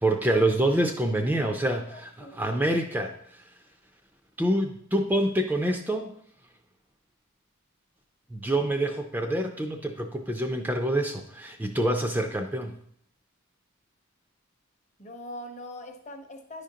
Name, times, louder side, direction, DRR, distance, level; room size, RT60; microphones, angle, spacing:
voice 1, 0.0-3.1 4.4-6.1 8.3-12.8, right 1 dB, 10° right, 4 dB, 0.4 m, -26 dB
voice 2, 1.9-2.4 15.0-16.6, left 1 dB, 30° left, 4 dB, 0.8 m, -42 dB
10.0 x 5.0 x 2.8 m, 0.65 s
head